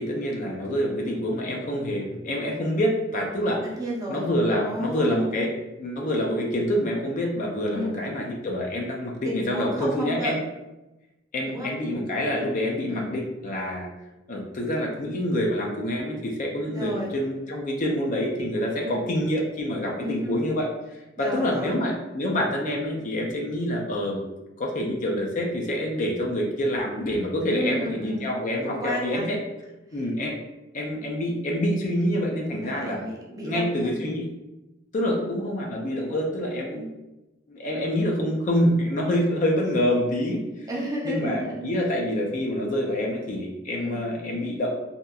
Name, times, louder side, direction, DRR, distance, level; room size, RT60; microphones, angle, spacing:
voice 1, 0.0-3.6 4.1-5.5 5.8-10.4 11.3-13.9 14.3-20.7 21.2-24.2 24.6-29.4 29.9-30.3 30.7-33.0 33.4-34.3 34.9-36.9 37.5-40.7 41.0-44.7, equal, 40° left, 0 dB, 0.4 m, -26 dB
voice 2, 3.8-5.2 7.7-8.0 9.3-10.4 11.5-11.7 12.9-13.1 16.7-17.1 18.8-19.0 20.0-20.3 21.2-21.8 27.5-28.2 28.6-29.3 29.9-30.0 32.6-34.0 35.2-35.4 40.7-41.6 43.8-44.0, equal, 15° right, -3 dB, 0.5 m, -32 dB
2.8 x 2.4 x 2.2 m, 1.0 s
head